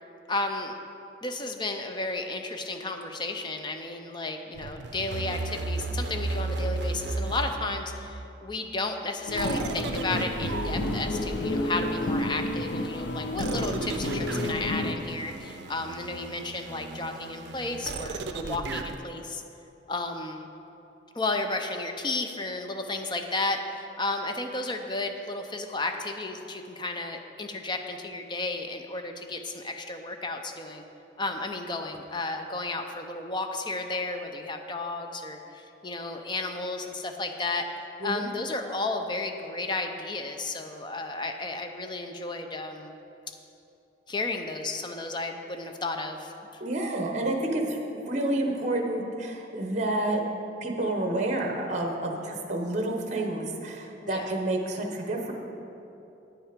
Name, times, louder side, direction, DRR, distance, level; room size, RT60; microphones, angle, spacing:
voice 1, 0.3-0.8 1.2-19.4 19.9-20.5 21.1-30.8 31.2-37.7 38.0-43.0 44.1-46.6 54.0-54.3, left 2 dB, 25° left, 5 dB, 0.6 m, -33 dB
sound 1, 4.5-8.3 9.4-12.4 13.4-19.0, right 3 dB, 70° right, 0.5 m, -34 dB
sound 2, 9.3-14.9, left 1 dB, 80° left, 0.6 m, -31 dB
voice 2, 46.6-50.2 50.6-55.3, right 1 dB, 40° right, 2 dB, 1.0 m, -29 dB
9.2 x 7.3 x 5.1 m, 2.9 s
head